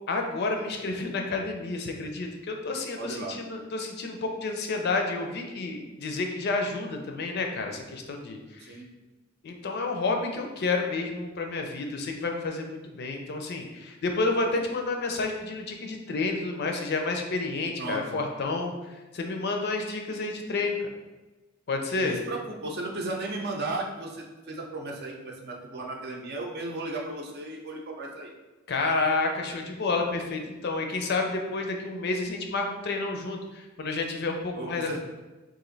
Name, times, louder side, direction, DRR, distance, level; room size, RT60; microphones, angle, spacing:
voice 1, 0.1-8.7 9.4-18.7 19.1-20.9 21.7-22.2 28.7-35.0, left 3 dB, 55° left, 3 dB, 0.5 m, -30 dB
voice 2, 3.0-3.4 8.6-8.9 17.8-18.2 22.0-28.3 34.5-35.0, right 2 dB, 55° right, 0 dB, 0.6 m, -35 dB
3.1 x 2.5 x 3.9 m, 1.2 s
head